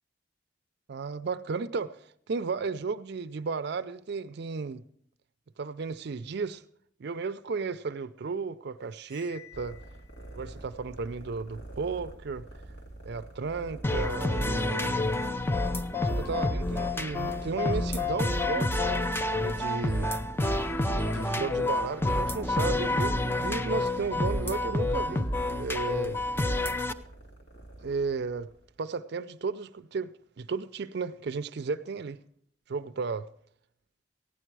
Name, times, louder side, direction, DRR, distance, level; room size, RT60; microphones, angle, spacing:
voice 1, 0.9-4.8 5.6-6.6 7.0-9.8 10.3-12.5 13.0-15.1 16.0-19.0 19.3-20.1 20.9-26.2 27.8-28.5 28.8-32.2 32.7-33.3, right 4 dB, 60° right, 0.5 m, -34 dB
Cymbal, 9.0-10.4, left 9 dB, 35° left, 2.1 m, -53 dB
sound 1, 9.5-28.8, right 1 dB, 70° left, 2.2 m, -46 dB
sound 2, 13.8-26.9, left 2 dB, 10° left, 0.5 m, -28 dB
15.0 x 9.9 x 4.6 m
head